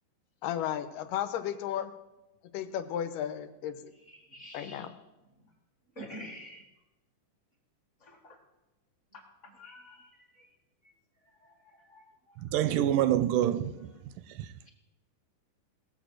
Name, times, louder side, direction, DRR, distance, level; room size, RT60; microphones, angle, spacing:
voice 1, 0.4-1.9 2.5-3.9 4.5-4.9, left 10 dB, 90° left, 2.5 m, -34 dB
voice 2, 4.1-4.8 5.9-6.6 8.0-8.3 9.6-10.3 11.9-12.0, equal, 30° left, 1.5 m, -47 dB
voice 3, 12.5-13.9 14.4-14.5, right 11 dB, 80° right, 2.1 m, -26 dB
17.5 x 7.3 x 6.3 m
omnidirectional pair, 3.8 m